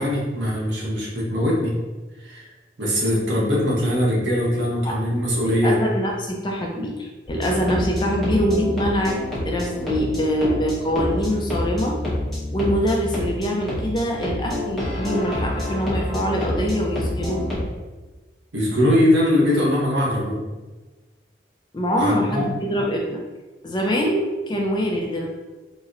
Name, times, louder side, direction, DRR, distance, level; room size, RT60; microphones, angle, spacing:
voice 1, 0.0-1.8 2.2-2.5 2.8-5.8 18.5-20.4 22.0-22.4, left 1 dB, 75° right, -3 dB, 0.8 m, -21 dB
voice 2, 5.6-9.2 9.4-12.0 12.5-17.4 21.7-23.2 23.6-25.3, equal, 25° left, 0 dB, 0.4 m, -24 dB
sound 1, 7.3-17.6, left 1 dB, ahead, 0.8 m, -28 dB
4.0 x 2.0 x 2.5 m, 1.2 s
head